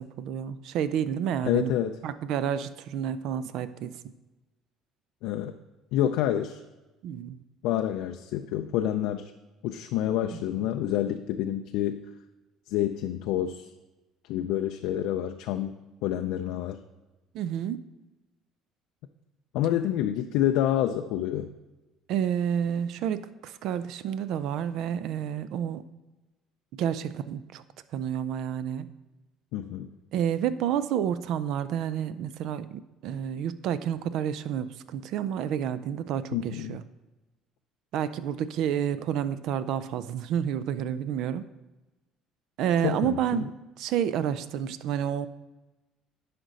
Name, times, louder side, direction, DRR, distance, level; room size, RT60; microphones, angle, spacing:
voice 1, 0.0-1.7 2.0-4.0 7.0-7.4 10.3-10.4 17.3-17.8 22.1-25.8 26.8-27.6 27.9-28.9 30.1-36.8 37.9-41.4 42.6-43.5 43.8-45.3, right 9 dB, 70° right, 14 dB, 0.4 m, -29 dB
voice 2, 1.4-2.0 5.2-5.5 5.9-6.6 7.6-9.3 9.6-12.0 12.7-13.7 14.3-15.7 16.0-16.8 19.5-21.5 29.5-29.9 36.3-36.8 42.8-43.4, left 11 dB, 80° left, 6 dB, 0.4 m, -28 dB
10.0 x 5.1 x 4.0 m, 1.1 s
cardioid pair, 105°, 0 cm